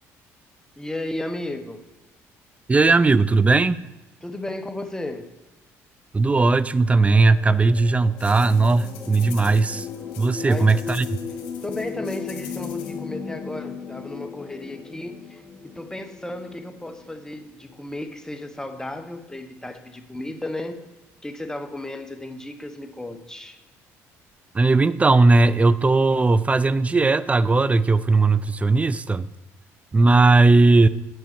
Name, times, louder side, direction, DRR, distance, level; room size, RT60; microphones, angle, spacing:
voice 1, 0.8-1.8 4.2-5.3 10.4-10.7 11.6-20.8 21.2-23.6, left 1 dB, 10° left, 8 dB, 1.1 m, -34 dB
voice 2, 2.7-3.8 6.1-9.9 10.2-11.1 24.5-29.3 29.9-30.9, right 3 dB, 20° right, 17 dB, 0.4 m, -18 dB
sound 1, 7.0-17.7 18.6-18.7, left 5 dB, 30° left, 1.0 m, -37 dB
sound 2, 8.2-13.0, left 8 dB, 85° left, 1.4 m, -45 dB
7.7 x 5.4 x 6.9 m, 1.1 s
supercardioid pair, 80°, 7 cm